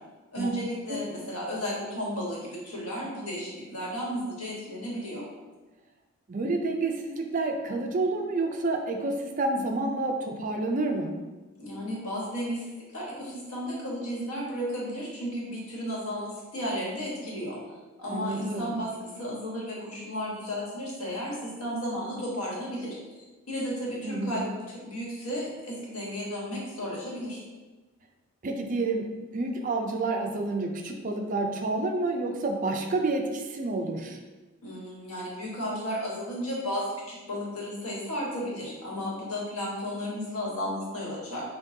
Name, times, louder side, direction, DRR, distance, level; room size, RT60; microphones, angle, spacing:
voice 1, 0.3-5.2 11.6-17.6 18.0-22.9 23.5-27.4 34.6-41.4, equal, 85° left, -4 dB, 1.3 m, -33 dB
voice 2, 6.3-11.1 18.1-18.7 24.0-24.5 28.4-34.2, right 2 dB, 35° right, 3 dB, 0.3 m, -29 dB
5.9 x 2.2 x 2.7 m, 1.2 s
head